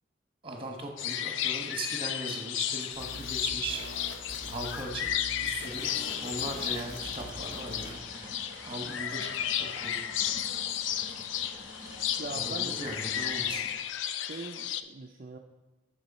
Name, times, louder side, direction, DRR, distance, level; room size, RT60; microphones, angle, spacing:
voice 1, 0.4-3.8 4.5-5.9 6.2-8.4 8.7-9.3 9.6-10.0 12.3-13.7, right 2 dB, 25° right, 2 dB, 1.2 m, -39 dB
sound 1, 1.0-14.8, left 10 dB, 75° left, 0.3 m, -33 dB
sound 2, 2.9-8.0, equal, 55° left, 1.4 m, -44 dB
sound 3, 5.8-13.7, equal, 10° right, 2.7 m, -47 dB
voice 2, 12.2-13.4 14.2-15.4, right 3 dB, 45° right, 1 dB, 0.4 m, -42 dB
6.6 x 6.1 x 4.2 m, 1.2 s
head